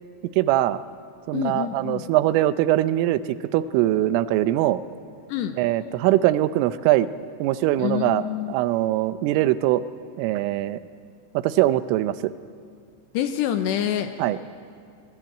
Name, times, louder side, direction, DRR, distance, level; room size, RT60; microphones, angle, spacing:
voice 1, 0.4-0.8 1.3-4.8 5.6-7.1 7.4-9.8 10.2-10.8 11.3-12.3 14.2-14.4, right 14 dB, 85° right, 13 dB, 3.3 m, -22 dB
voice 2, 1.3-2.1 5.3-5.6 7.8-8.5 13.1-14.1, left 10 dB, 80° left, 8 dB, 2.7 m, -26 dB
25.5 x 20.5 x 9.0 m, 2.3 s
omnidirectional pair, 5.7 m